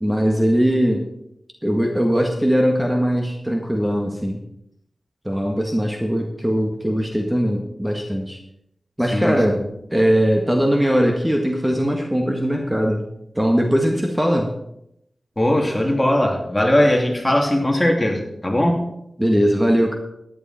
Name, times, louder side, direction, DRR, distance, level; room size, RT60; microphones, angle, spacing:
voice 1, 0.0-1.1 1.6-4.4 5.3-8.4 9.0-9.6 9.9-13.1 13.4-14.5 19.2-19.9, equal, 10° right, 2 dB, 1.8 m, -20 dB
voice 2, 9.1-9.7 15.4-18.8, left 1 dB, 20° left, 1 dB, 2.9 m, -19 dB
14.0 x 10.5 x 4.4 m, 0.80 s
cardioid pair, 55°, 0 cm